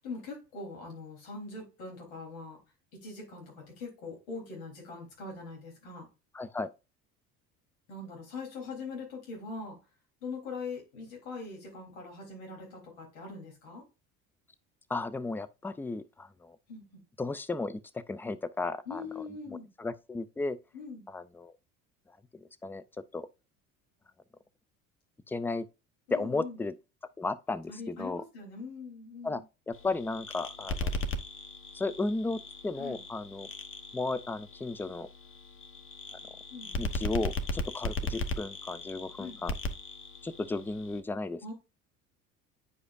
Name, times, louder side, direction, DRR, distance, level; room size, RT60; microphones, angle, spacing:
voice 1, 0.0-2.6 2.9-6.1 7.9-9.8 10.2-13.8 16.7-17.0 18.8-19.7 20.7-21.0 26.1-26.6 27.7-29.4 32.8-33.0 36.5-36.8 39.2-39.4 41.4-41.5, left 4 dB, 80° left, 3.5 m, -42 dB
voice 2, 6.3-6.7 14.9-16.6 17.2-19.0 19.5-20.6 21.1-21.5 22.3-22.8 23.1-23.3 25.3-25.7 26.1-26.7 27.2-28.2 29.2-31.0 31.7-33.5 33.9-35.1 36.8-39.5 40.2-41.5, left 3 dB, 5° left, 0.3 m, -34 dB
sound 1, 29.7-41.0, left 2 dB, 30° left, 1.0 m, -38 dB
9.6 x 4.9 x 2.5 m
hypercardioid pair, 70°, 42 cm